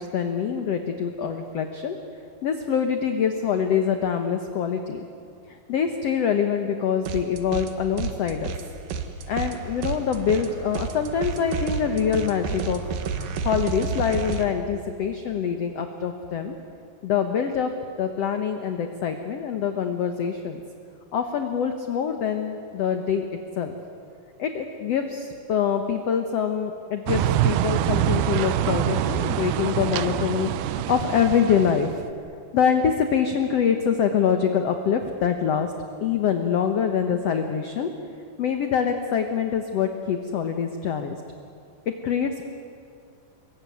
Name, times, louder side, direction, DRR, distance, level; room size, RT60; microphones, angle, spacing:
voice 1, 0.0-2.0 2.4-5.0 5.5-8.5 9.3-12.8 13.4-16.5 17.0-20.6 21.1-23.3 23.6-23.8 24.4-32.0 32.5-35.7 36.0-37.9 38.4-41.2 41.9-42.5, left 7 dB, 60° left, 6 dB, 1.7 m, -25 dB
sound 1, 7.0-7.7 8.0-14.4, right 5 dB, 70° right, 3.0 m, -31 dB
sound 2, 27.1-32.0, right 12 dB, 85° right, 2.7 m, -25 dB
25.5 x 22.0 x 9.5 m, 2.4 s
omnidirectional pair, 4.3 m